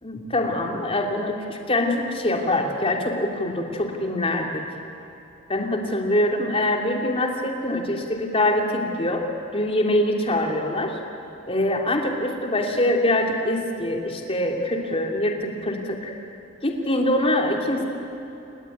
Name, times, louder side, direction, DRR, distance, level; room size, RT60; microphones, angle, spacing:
voice 1, 0.0-4.6 5.5-9.3 9.5-11.0 11.5-16.1 16.6-17.8, left 1 dB, 30° left, 2 dB, 3.1 m, -24 dB
28.5 x 20.5 x 9.4 m, 2.9 s
head